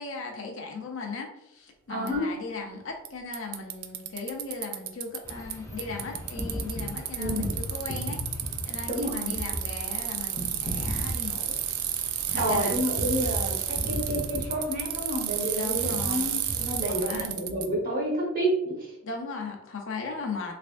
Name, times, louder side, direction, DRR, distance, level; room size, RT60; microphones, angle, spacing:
voice 1, 0.0-11.6 12.3-12.8 15.5-16.3 16.9-17.3 19.0-20.5, left 4 dB, 60° left, 1 dB, 0.6 m, -37 dB
voice 2, 1.9-2.2 7.1-7.5 8.9-9.3 12.4-18.9, equal, 40° right, -4 dB, 1.2 m, -29 dB
Bicycle, 2.1-2.2 3.1-3.2 3.3-5.5 5.8-17.7, right 11 dB, 75° right, 0.4 m, -31 dB
sound 1, 5.2-17.3, equal, 15° left, 0.6 m, -37 dB
3.4 x 3.4 x 2.5 m, 0.85 s
head